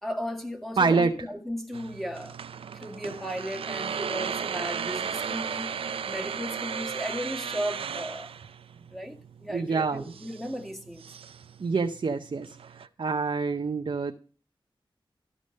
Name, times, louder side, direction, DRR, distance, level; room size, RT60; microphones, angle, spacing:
voice 1, 0.0-2.4 2.7-8.3 8.9-11.0, equal, ahead, 2.0 m, -35 dB
voice 2, 0.8-1.1 9.5-10.0 11.6-14.1, right 4 dB, 65° right, 0.8 m, -26 dB
sound 1, 1.7-12.9, right 7 dB, 85° right, 0.4 m, -36 dB
14.0 x 5.0 x 6.5 m
cardioid pair, 55°, 9 cm